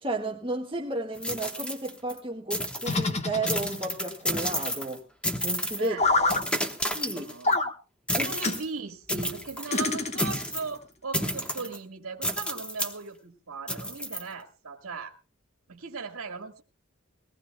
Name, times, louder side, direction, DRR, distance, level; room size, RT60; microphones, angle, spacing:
voice 1, 0.0-5.0 5.4-6.0 6.9-7.3 8.2-8.3, right 2 dB, 25° right, 1.7 m, -32 dB
sound 1, 1.2-2.2 2.5-3.0 3.5-5.0 5.2-5.9 6.3-7.5 8.1-8.6 9.1-9.8 10.2-10.7 11.1-11.8 12.2-13.0 13.7-14.2, equal, 5° left, 1.1 m, -31 dB
sound 2, 2.8-4.0 6.0-6.4 7.4-7.7 8.4-8.6 9.7-10.6, left 3 dB, 30° left, 1.2 m, -26 dB
voice 2, 5.8-6.5 7.1-7.6 8.1-15.1 15.7-16.6, right 4 dB, 80° right, 1.7 m, -38 dB
21.0 x 18.5 x 2.2 m
head